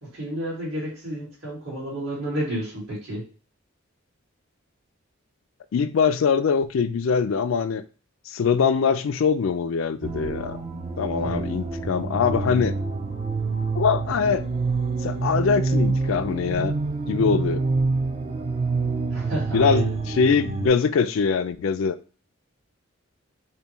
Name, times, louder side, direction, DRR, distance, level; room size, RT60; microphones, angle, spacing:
voice 1, 0.0-3.2 11.2-11.4 19.1-19.9, right 1 dB, 60° right, 2.2 m, -31 dB
voice 2, 5.7-7.8 8.3-10.6 11.0-12.7 13.8-14.5 14.9-16.7 17.1-17.6 19.5-22.0, left 6 dB, 70° left, 0.4 m, -23 dB
sound 1, 10.0-20.7, right 3 dB, 30° right, 0.4 m, -27 dB
5.4 x 2.2 x 2.9 m
head